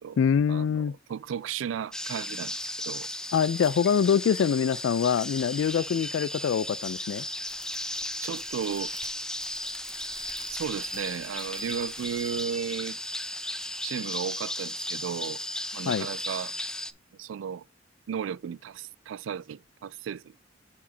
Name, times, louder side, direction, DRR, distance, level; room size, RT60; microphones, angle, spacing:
voice 1, 0.2-0.9 3.3-7.2 15.9-16.1, left 7 dB, 75° left, 0.3 m, -24 dB
voice 2, 1.1-3.1 8.2-8.9 10.5-13.0 13.8-15.4 15.7-16.5 17.2-17.6 18.1-20.3, right 8 dB, 85° right, 0.3 m, -34 dB
sound 1, 1.9-16.9, left 1 dB, 5° left, 0.5 m, -35 dB
sound 2, 7.4-12.6, right 5 dB, 25° right, 1.1 m, -50 dB
7.1 x 4.8 x 3.9 m
head